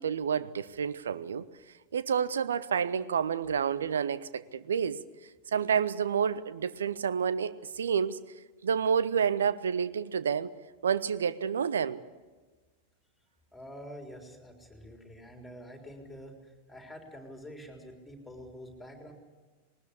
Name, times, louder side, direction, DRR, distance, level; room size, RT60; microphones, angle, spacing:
voice 1, 0.0-1.4 1.9-5.0 5.5-7.5 7.8-8.2 8.6-10.5 10.8-12.0, right 7 dB, 65° right, 17 dB, 0.7 m, -29 dB
voice 2, 13.5-19.1, equal, 5° left, 3 dB, 3.9 m, -47 dB
20.0 x 19.5 x 8.3 m, 1.3 s
figure-of-eight pair, 90°, 0 cm